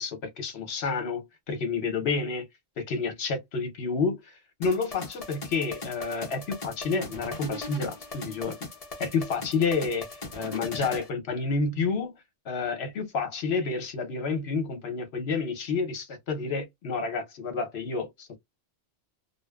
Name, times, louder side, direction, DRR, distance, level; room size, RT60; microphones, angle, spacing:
voice 1, 0.0-2.4 2.8-8.6 9.0-10.1 10.3-12.1 12.4-18.4, left 4 dB, 70° left, 1.0 m, -29 dB
sound 1, 4.6-11.1, left 3 dB, 40° left, 0.7 m, -39 dB
2.6 x 2.1 x 2.2 m
omnidirectional pair, 1.1 m